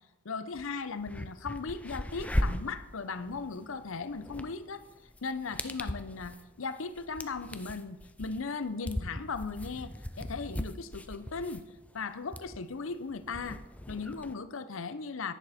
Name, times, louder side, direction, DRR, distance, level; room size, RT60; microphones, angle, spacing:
voice 1, 0.2-4.8 5.2-11.6 11.9-13.6 13.9-15.3, left 4 dB, 65° left, 13 dB, 0.6 m, -37 dB
sound 1, 0.5-0.6 1.0-14.3, left 1 dB, 5° left, 0.4 m, -38 dB
10.5 x 10.5 x 4.2 m, 1.1 s
head